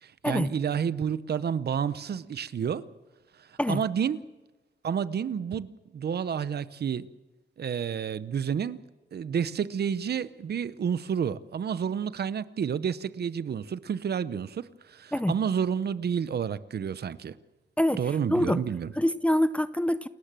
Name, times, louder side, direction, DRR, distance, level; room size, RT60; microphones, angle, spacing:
voice 1, 0.0-2.9 3.4-4.2 4.8-7.1 7.6-8.8 9.1-17.4 18.0-18.9, right 7 dB, 65° right, 0.7 m, -30 dB
voice 2, 19.0-20.1, left 1 dB, 5° left, 0.6 m, -25 dB
28.5 x 13.5 x 7.6 m
wide cardioid pair, 155°, 18 cm